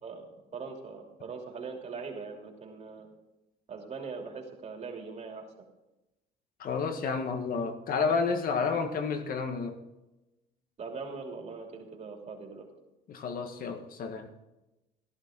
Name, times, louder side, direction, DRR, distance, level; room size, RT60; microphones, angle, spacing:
voice 1, 0.0-3.1 3.7-5.5 10.8-12.7, right 4 dB, 40° right, 1 dB, 2.9 m, -41 dB
voice 2, 6.6-9.8 13.1-14.3, left 5 dB, 55° left, 7 dB, 1.6 m, -30 dB
14.5 x 11.5 x 3.8 m, 0.97 s
cardioid pair, 110°, 17 cm